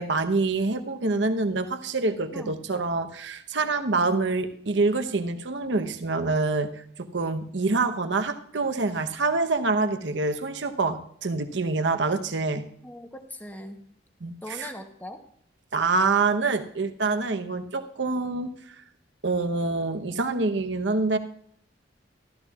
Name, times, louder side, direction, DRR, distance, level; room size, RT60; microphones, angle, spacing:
voice 1, 0.0-6.7 7.0-12.7 14.2-14.7 15.7-18.5 19.2-21.2, right 3 dB, 80° right, 7 dB, 0.9 m, -26 dB
voice 2, 12.8-13.9 14.4-15.2, left 1 dB, 10° left, 6 dB, 0.9 m, -40 dB
15.0 x 13.0 x 2.4 m, 0.68 s
head